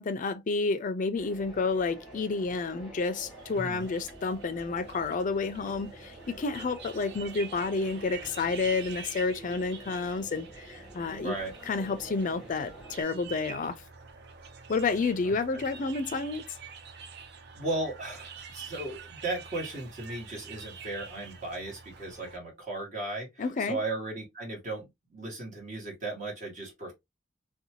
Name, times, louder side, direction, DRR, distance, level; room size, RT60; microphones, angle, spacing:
voice 1, 0.0-11.3 11.7-13.8 14.7-16.4 23.4-23.8, left 4 dB, 45° left, 0.4 m, -30 dB
sound 1, 1.1-13.0, right 2 dB, ahead, 1.2 m, -48 dB
sound 2, 3.3-22.4, right 6 dB, 60° right, 0.5 m, -47 dB
voice 2, 3.5-3.9 11.2-11.5 15.2-15.6 17.5-26.9, right 2 dB, 40° right, 1.3 m, -36 dB
2.7 x 2.2 x 2.8 m
head